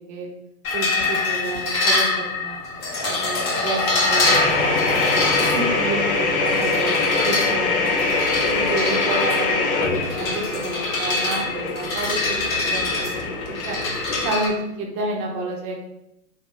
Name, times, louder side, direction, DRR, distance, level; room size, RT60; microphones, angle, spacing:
sound 1, 0.6-14.5, left 3 dB, 70° left, 1.0 m, -25 dB
voice 1, 0.7-2.6 3.0-8.1 8.5-13.3 13.6-13.8 14.2-15.8, right 2 dB, 25° right, 1 dB, 0.4 m, -30 dB
Breathing, 2.7-6.5, left 2 dB, 30° left, 0.5 m, -31 dB
sound 2, 4.2-14.3, left 3 dB, 90° left, 0.7 m, -23 dB
3.0 x 2.4 x 3.0 m, 0.83 s
hypercardioid pair, 110°, 41 cm